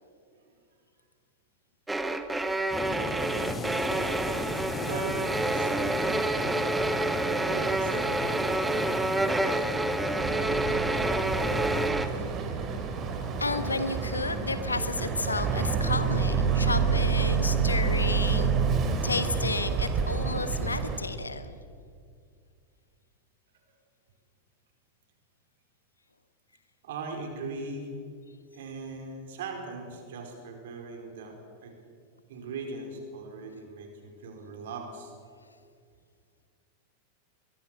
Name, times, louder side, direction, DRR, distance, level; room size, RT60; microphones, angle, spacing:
sound 1, 1.9-12.1, right 2 dB, 10° right, 1.3 m, -28 dB
Indian Ocean - distant rumble, 2.7-11.9, left 2 dB, 15° left, 2.3 m, -35 dB
voice 1, 4.8-6.4 7.4-8.6 26.8-27.9 28.5-31.7 32.3-35.1, right 3 dB, 55° right, 3 dB, 4.8 m, -40 dB
Boat Water vehicle, 10.2-21.0, right 5 dB, 30° right, 3.0 m, -28 dB
voice 2, 13.4-18.6 19.0-21.6, left 3 dB, 80° left, 11 dB, 1.4 m, -32 dB
22.5 x 22.5 x 6.8 m, 2.2 s
figure-of-eight pair, 90°, 0 cm